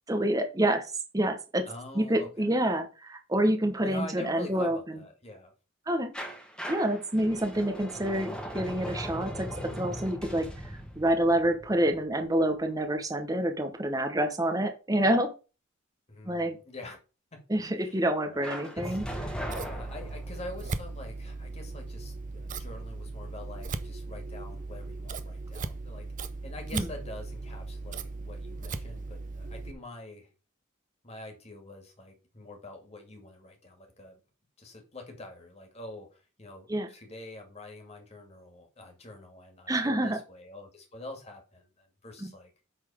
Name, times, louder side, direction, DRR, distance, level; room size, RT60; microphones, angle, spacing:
voice 1, 0.1-1.7 1.9-4.8 5.9-6.1 6.7-15.3 16.2-16.6 17.5-19.0 26.7-26.8 36.7-36.9 39.7-40.2, right 1 dB, 20° right, 0.9 m, -27 dB
voice 2, 1.7-2.5 3.8-5.5 16.1-17.0 17.3-17.4 17.8-18.5 18.7-19.0 19.6-30.3 31.0-34.2 34.6-42.5, left 2 dB, 30° left, 2.3 m, -45 dB
sound 1, 6.1-12.9 18.4-20.7, equal, 5° left, 1.5 m, -39 dB
Scissors, 19.0-29.7, right 3 dB, 40° right, 0.6 m, -38 dB
8.6 x 4.1 x 5.0 m
head